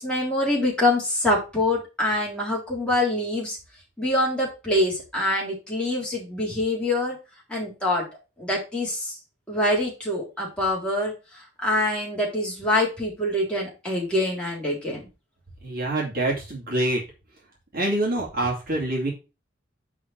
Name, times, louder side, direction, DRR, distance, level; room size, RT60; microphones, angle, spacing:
voice 1, 0.0-3.6 4.0-7.2 7.5-8.0 8.4-9.2 9.5-11.1 11.6-15.1, left 1 dB, 5° left, -4 dB, 3.7 m, -25 dB
voice 2, 15.6-17.0 17.7-19.1, right 1 dB, 50° right, -3 dB, 2.8 m, -25 dB
6.3 x 5.5 x 5.8 m, 0.28 s
head